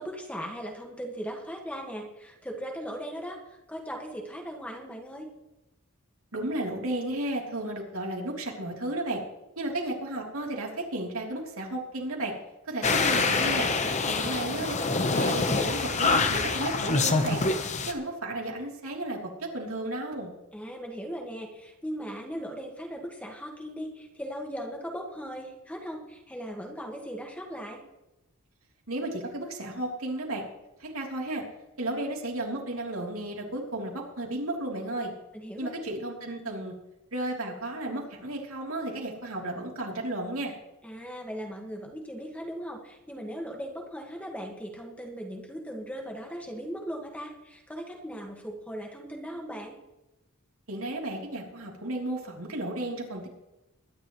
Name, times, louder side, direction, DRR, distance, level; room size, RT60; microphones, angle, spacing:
voice 1, 0.0-3.4 3.7-5.3 13.7-14.3 20.5-27.8 35.3-35.7 40.8-49.8, equal, 5° left, 1 dB, 1.7 m, -38 dB
voice 2, 6.3-9.2 9.6-12.3 12.6-13.7 14.0-14.7 15.1-17.4 17.9-20.3 28.9-30.4 30.8-31.4 31.8-35.1 35.6-36.7 37.1-40.5 50.7-53.3, right 1 dB, 75° right, -1 dB, 3.4 m, -33 dB
sound 1, 12.8-17.9, left 3 dB, 35° left, 1.1 m, -26 dB
22.5 x 11.0 x 3.2 m, 0.98 s
head